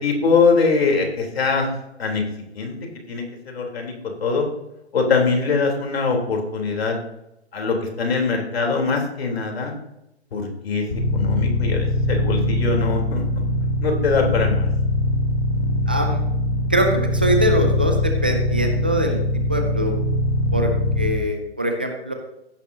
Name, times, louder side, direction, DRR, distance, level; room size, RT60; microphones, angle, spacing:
voice 1, 0.0-1.7 2.0-2.2 2.5-3.9 4.2-4.5 4.9-7.0 7.5-9.7 10.3-10.8 11.1-13.4 13.8-14.7, left 4 dB, 65° left, 1 dB, 3.7 m, -22 dB
sound 1, 10.9-21.1, left 1 dB, 35° left, 2.0 m, -22 dB
voice 2, 15.9-16.2 16.7-19.2 19.5-19.9 20.5-20.7 21.0-22.1, equal, 10° right, 4 dB, 0.3 m, -22 dB
16.0 x 8.9 x 2.8 m, 0.87 s
hypercardioid pair, 145°, 33 cm